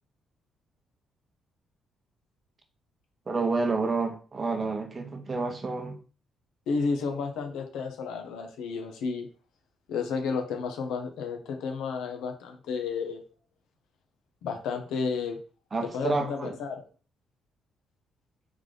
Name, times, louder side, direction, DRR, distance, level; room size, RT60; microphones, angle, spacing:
voice 1, 3.3-6.0 15.7-16.5, right 3 dB, 35° right, 0.9 m, -29 dB
voice 2, 6.7-9.3 9.9-13.2 14.4-15.4 15.8-16.8, left 5 dB, 85° left, 0.9 m, -32 dB
3.5 x 3.3 x 3.8 m
cardioid pair, 90°, 0 cm